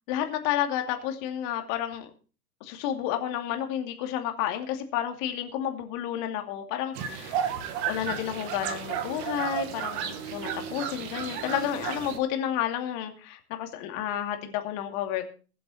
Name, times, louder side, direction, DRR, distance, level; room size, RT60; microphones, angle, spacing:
voice 1, 0.1-2.1 2.6-7.4 7.9-15.3, left 10 dB, 40° left, 5 dB, 2.6 m, -31 dB
sound 1, 7.0-12.2, right 8 dB, 45° right, 2.1 m, -33 dB
22.5 x 7.8 x 4.2 m, 0.37 s
figure-of-eight pair, 100°, 48 cm